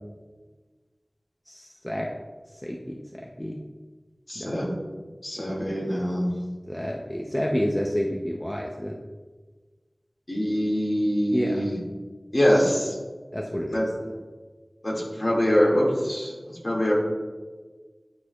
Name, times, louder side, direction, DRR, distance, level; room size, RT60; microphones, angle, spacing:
voice 1, 1.5-2.1 2.6-3.6 4.4-4.6 6.7-8.9 11.3-11.7 13.3-13.9, equal, 15° left, -1 dB, 0.6 m, -29 dB
voice 2, 4.3-4.7 5.2-6.3 10.3-11.8 12.3-13.0 13.7-13.9 14.8-16.3 16.6-16.9, equal, 50° left, -4 dB, 1.9 m, -24 dB
10.5 x 4.8 x 2.3 m, 1.4 s
wide cardioid pair, 55°, 0 cm